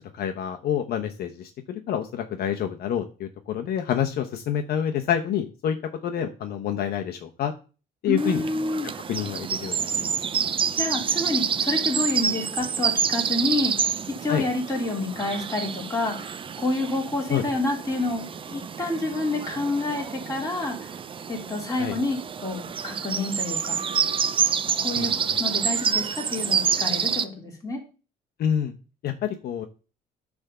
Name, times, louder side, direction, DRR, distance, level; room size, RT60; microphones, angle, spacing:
voice 1, 0.0-5.8 6.0-7.5 8.0-8.4 8.9-10.1 14.3-14.4 17.3-17.4 21.8-22.0 24.9-25.4 28.4-28.7 29.0-29.7, left 9 dB, 65° left, 5 dB, 0.9 m, -28 dB
voice 2, 8.1-8.9 10.7-16.3 16.6-20.9 21.3-23.8 24.8-27.8, left 2 dB, 20° left, -1 dB, 3.4 m, -28 dB
sound 1, 8.2-27.2, right 7 dB, 30° right, 0.5 m, -28 dB
9.7 x 3.5 x 6.7 m, 0.35 s
cardioid pair, 110°, 17 cm